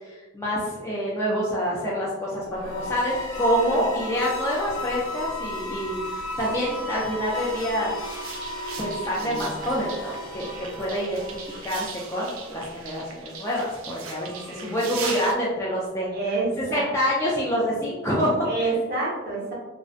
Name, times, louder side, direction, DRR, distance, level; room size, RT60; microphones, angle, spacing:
voice 1, 0.1-7.9 8.8-11.3 11.6-16.1 16.7-18.4, equal, 15° left, -6 dB, 0.3 m, -27 dB
sound 1, 2.5-12.4, left 1 dB, 75° left, 0.5 m, -35 dB
sound 2, 8.0-15.3, right 5 dB, 70° right, 0.3 m, -39 dB
sound 3, 9.2-10.2, left 3 dB, 30° right, 1.0 m, -42 dB
voice 2, 14.6-14.9 16.1-16.9 18.4-19.5, right 3 dB, 50° right, -4 dB, 0.8 m, -28 dB
2.4 x 2.1 x 2.4 m, 1.1 s
head